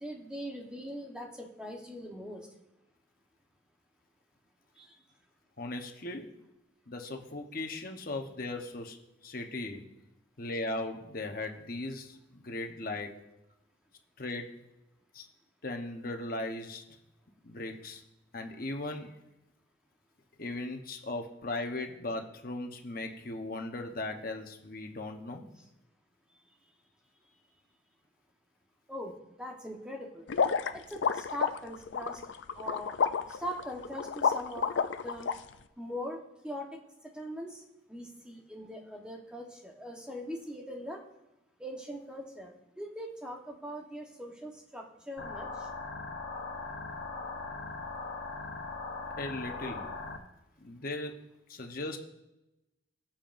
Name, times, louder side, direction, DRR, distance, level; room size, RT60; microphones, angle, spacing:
voice 1, 0.0-2.5 4.8-5.0 28.9-30.3 30.9-32.2 32.5-32.9 33.3-34.7 35.0-35.3 35.8-37.6 37.9-41.0 41.6-45.7, equal, 5° right, 0 dB, 1.1 m, -41 dB
voice 2, 5.6-6.3 6.9-9.0 9.2-9.8 10.4-13.2 14.2-14.5 15.1-15.3 15.6-16.8 17.4-18.0 18.3-19.1 20.4-25.5 49.2-49.9 50.6-51.1 51.5-52.0, left 2 dB, 45° left, 3 dB, 1.0 m, -38 dB
sound 1, 30.3-35.3, left 6 dB, 70° left, 0.4 m, -30 dB
sound 2, 45.2-50.2, left 3 dB, 90° left, 1.1 m, -40 dB
18.5 x 7.3 x 2.6 m, 0.95 s
head